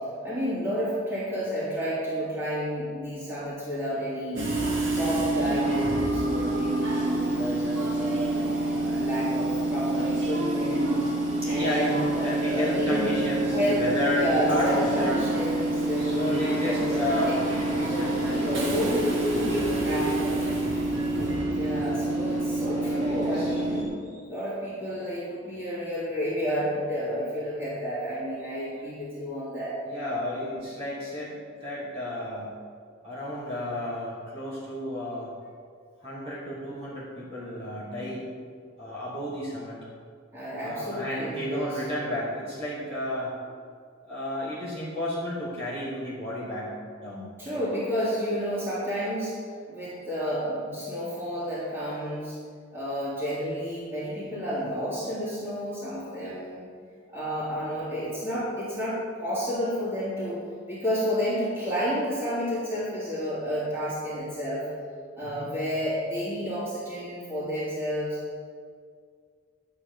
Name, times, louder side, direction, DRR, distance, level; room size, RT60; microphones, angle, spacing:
voice 1, 0.2-4.5 4.9-8.3 8.7-11.0 11.4-13.2 13.5-13.8 14.1-17.2 17.9-20.5 21.5-29.8 40.3-41.8 44.2-44.5 47.4-49.3 49.7-52.4 52.7-56.7 57.1-60.4 60.7-64.7 65.1-68.2, equal, 10° right, -10 dB, 3.5 m, -31 dB
Train / Subway metro underground, 4.4-23.8, right 1 dB, 65° right, 2.1 m, -27 dB
voice 2, 11.4-11.9 12.2-15.2 16.0-17.4 17.7-18.9 22.7-23.5 29.9-32.5 33.0-35.3 36.0-38.3 38.8-39.8 40.6-43.3 44.1-47.6 65.2-65.5, left 1 dB, 30° right, -8 dB, 3.5 m, -32 dB
11.5 x 8.6 x 5.6 m, 2.1 s
head